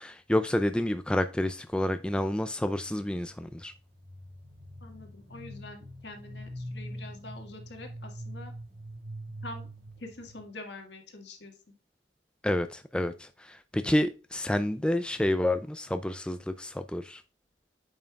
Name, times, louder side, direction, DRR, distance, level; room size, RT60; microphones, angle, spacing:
voice 1, 0.0-3.7 12.4-17.2, left 1 dB, 5° left, 0.3 m, -29 dB
sound 1, 2.7-10.4, equal, 80° right, 3.7 m, -44 dB
voice 2, 4.8-8.5 9.4-9.7 10.0-11.6, left 2 dB, 70° left, 1.7 m, -45 dB
8.8 x 5.6 x 2.4 m
head